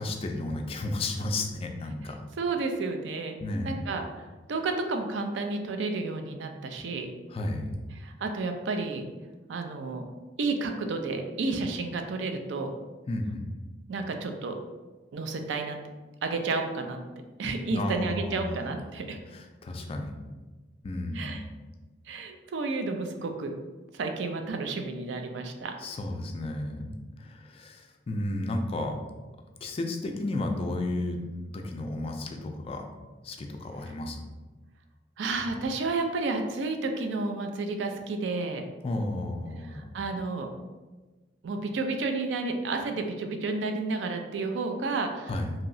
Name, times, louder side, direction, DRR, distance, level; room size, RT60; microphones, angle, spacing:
voice 1, 0.0-2.2 3.4-3.8 7.3-7.8 13.1-13.5 17.7-18.7 19.3-20.1 20.8-21.5 25.8-29.0 29.6-32.9 33.2-34.2 38.8-39.9 45.3-45.5, left 2 dB, 35° left, 4 dB, 0.3 m, -33 dB
voice 2, 2.4-3.4 3.6-4.2 4.5-7.1 7.9-9.1 9.5-10.0 10.4-12.8 13.9-14.6 15.1-15.8 16.2-17.0 17.4-19.2 21.1-21.4 22.1-23.5 23.9-25.7 35.2-38.7 39.7-40.5 41.4-45.3, right 3 dB, 90° right, 5 dB, 0.4 m, -31 dB
3.0 x 2.7 x 2.6 m, 1.2 s
head